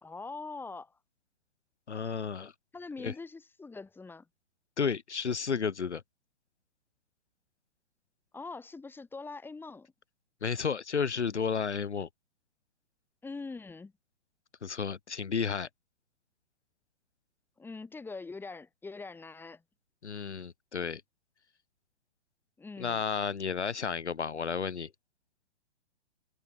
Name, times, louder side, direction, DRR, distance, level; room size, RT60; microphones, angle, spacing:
voice 1, 0.0-0.9 2.7-4.3 8.3-9.9 13.2-13.9 17.6-19.6 22.6-23.0, left 3 dB, 5° left, 2.4 m, -43 dB
voice 2, 1.9-2.5 3.0-3.1 4.8-6.0 10.4-12.1 14.6-15.7 20.0-21.0 22.8-24.9, left 6 dB, 80° left, 0.9 m, -32 dB
figure-of-eight pair, 120°, 34 cm